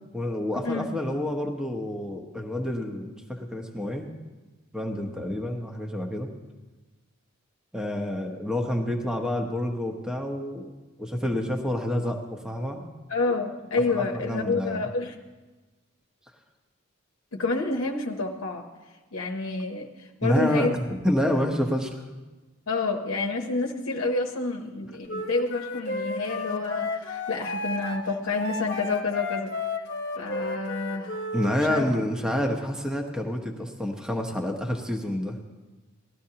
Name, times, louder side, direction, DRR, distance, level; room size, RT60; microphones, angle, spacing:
voice 1, 0.1-4.1 4.7-6.3 7.7-10.7 11.0-12.8 13.9-14.8 20.2-22.0 31.3-35.4, left 1 dB, 5° right, 2 dB, 0.9 m, -28 dB
voice 2, 13.1-15.1 17.3-18.7 19.1-20.7 22.7-29.5 30.2-31.2 31.7-31.8, left 3 dB, 70° left, 1 dB, 0.8 m, -28 dB
Wind instrument woodwind instrument, 25.1-31.6, left 2 dB, 50° left, 1.1 m, -33 dB
18.5 x 13.0 x 2.9 m, 1.2 s
head